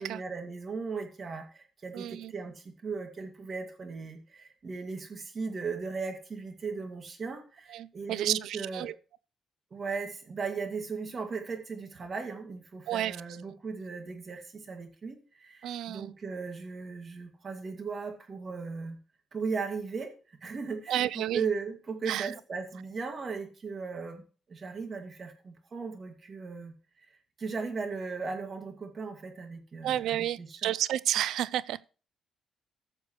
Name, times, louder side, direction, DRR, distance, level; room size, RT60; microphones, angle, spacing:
voice 1, 0.0-8.9 9.7-19.0 19.3-24.2 24.5-26.7 27.0-27.1 27.4-30.7, right 5 dB, 40° right, 2.2 m, -37 dB
voice 2, 1.9-2.3 7.7-8.9 12.9-13.2 15.6-16.1 20.9-21.4 22.1-22.3 29.8-31.8, right 12 dB, 80° right, 0.4 m, -31 dB
14.5 x 6.8 x 3.2 m
cardioid pair, 90°, 0 cm